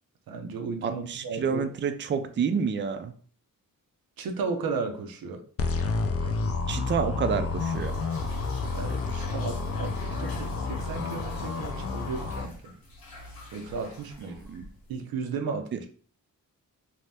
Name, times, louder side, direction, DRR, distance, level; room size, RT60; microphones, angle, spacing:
voice 1, 0.3-1.6 4.2-5.4 8.6-12.7 13.5-14.4 14.9-15.9, right 4 dB, 80° right, 5 dB, 0.6 m, -34 dB
voice 2, 0.8-3.1 6.7-7.9 14.5-14.7 15.7-15.8, right 6 dB, 35° right, 9 dB, 0.4 m, -29 dB
sound 1, 5.6-12.4, left 4 dB, 45° left, 0.4 m, -30 dB
sound 2, 7.4-15.0, left 2 dB, 85° left, 0.9 m, -46 dB
2.7 x 2.1 x 3.3 m, 0.43 s
cardioid pair, 80°, 35 cm